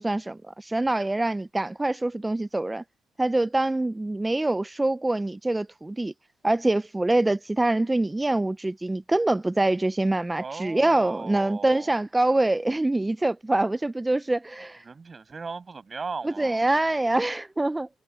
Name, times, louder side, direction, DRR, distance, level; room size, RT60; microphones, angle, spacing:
voice 1, 0.0-2.8 3.2-6.1 6.4-14.8 16.2-17.9, right 2 dB, 15° right, 0.5 m, -25 dB
voice 2, 10.4-12.0 14.8-16.6, right 4 dB, 30° right, 6.8 m, -37 dB
supercardioid pair, 80°, 0 cm